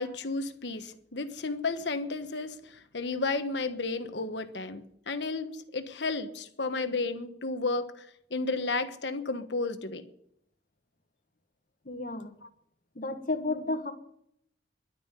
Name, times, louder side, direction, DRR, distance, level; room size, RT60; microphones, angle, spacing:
voice 1, 0.0-10.0 12.4-12.5, left 3 dB, 70° left, 1.3 m, -33 dB
voice 2, 11.8-12.3 12.9-13.9, left 2 dB, 50° left, 1.5 m, -32 dB
12.0 x 9.4 x 9.8 m
head